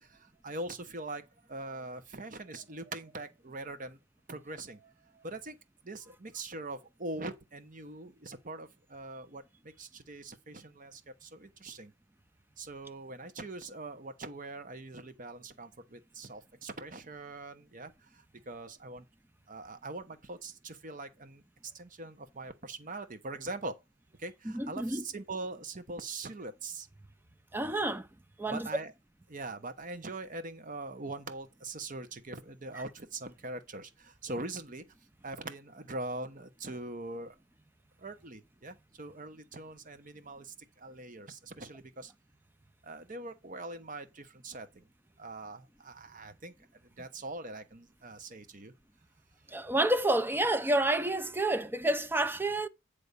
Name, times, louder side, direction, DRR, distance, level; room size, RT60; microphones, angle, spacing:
voice 1, 0.0-4.0 4.3-5.6 5.8-11.9 12.6-19.0 19.5-23.8 24.2-26.9 28.5-28.9 29.3-34.8 35.2-37.3 38.0-42.1 42.8-44.8 45.2-46.5 47.0-48.7, right 2 dB, 45° right, 1.1 m, -42 dB
voice 2, 24.4-25.0 27.5-28.1 28.4-28.7 49.5-52.7, right 1 dB, 10° right, 0.6 m, -29 dB
9.2 x 3.5 x 6.7 m
head